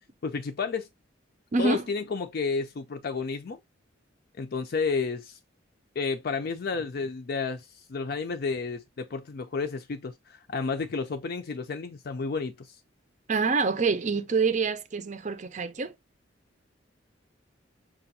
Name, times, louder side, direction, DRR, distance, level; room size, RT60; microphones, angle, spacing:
voice 1, 0.2-0.9 1.6-3.6 4.4-5.4 6.0-12.8, left 4 dB, 55° left, 0.4 m, -31 dB
voice 2, 1.5-1.8 13.3-15.9, right 4 dB, 40° right, 0.5 m, -26 dB
6.0 x 2.3 x 2.6 m
head